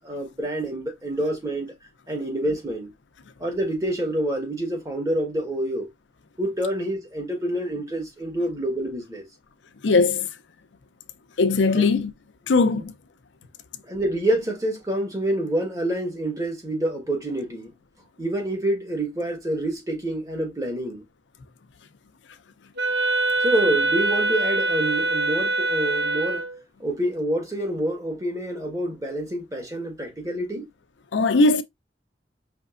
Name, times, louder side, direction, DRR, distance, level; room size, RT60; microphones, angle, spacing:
voice 1, 0.0-1.7 2.1-2.9 3.4-5.9 6.4-9.3 11.7-11.9 13.8-17.7 18.2-21.0 23.4-26.4 26.8-30.7, right 1 dB, 20° right, 1.4 m, -27 dB
voice 2, 9.8-10.3 11.4-12.1 12.5-12.9 31.1-31.6, left 3 dB, 90° left, 0.6 m, -19 dB
Wind instrument woodwind instrument, 22.8-26.6, right 2 dB, 60° right, 1.0 m, -24 dB
5.1 x 3.2 x 2.5 m
head